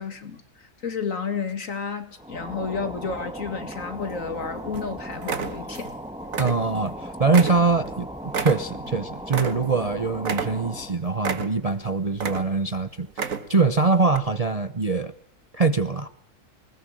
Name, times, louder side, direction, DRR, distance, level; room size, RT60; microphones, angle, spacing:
voice 1, 0.0-5.9, left 5 dB, 55° left, 2.5 m, -31 dB
sound 1, 2.2-11.0, equal, 5° right, 1.7 m, -37 dB
sound 2, 3.7-4.4 4.7-4.9 5.2-6.0 6.2-7.0 7.3-9.9 10.2-10.8 11.2-11.8 12.1-12.7 13.1-13.7 14.1-14.2, right 6 dB, 60° right, 1.9 m, -31 dB
voice 2, 6.4-15.1 15.5-16.1, right 4 dB, 30° right, 0.8 m, -23 dB
20.5 x 20.5 x 7.6 m
omnidirectional pair, 1.6 m